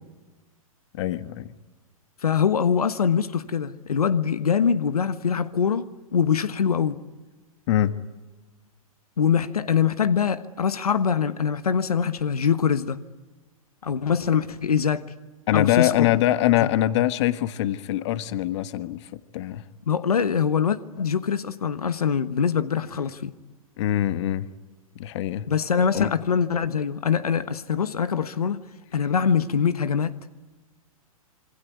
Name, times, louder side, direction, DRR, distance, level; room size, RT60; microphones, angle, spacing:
voice 1, 0.9-1.5 7.7-8.0 15.5-19.6 23.8-24.5 25.0-25.5 25.9-26.1, left 13 dB, 50° left, 1.4 m, -23 dB
voice 2, 2.2-7.0 9.2-13.0 13.8-15.0 15.5-16.1 19.9-23.3 25.5-28.6 28.9-30.2, left 7 dB, 80° left, 1.2 m, -23 dB
26.5 x 23.0 x 9.4 m
hypercardioid pair, 120°, 19 cm